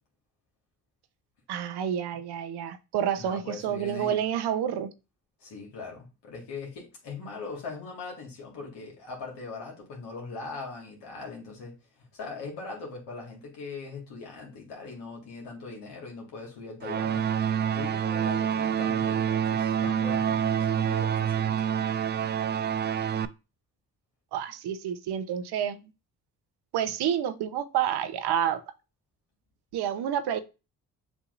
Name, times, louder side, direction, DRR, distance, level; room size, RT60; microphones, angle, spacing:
voice 1, 1.5-4.9 24.3-25.8 26.7-28.6 29.7-30.4, right 9 dB, 70° right, 0.8 m, -29 dB
voice 2, 3.2-4.2 5.4-17.3 17.7-21.7, left 4 dB, 75° left, 1.8 m, -40 dB
sound 1, 16.8-23.3, right 8 dB, 25° right, 0.3 m, -27 dB
6.9 x 2.7 x 2.5 m
hypercardioid pair, 50°, 41 cm